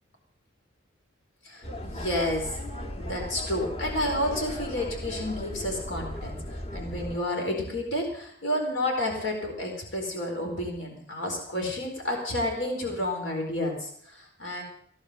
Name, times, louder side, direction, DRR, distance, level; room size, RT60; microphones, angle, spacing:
voice 1, 1.4-2.6 2.9-14.6, left 1 dB, 85° left, 1 dB, 4.2 m, -30 dB
sound 1, 1.6-7.2, left 1 dB, 30° left, 1.4 m, -36 dB
17.0 x 11.0 x 6.7 m, 0.63 s
head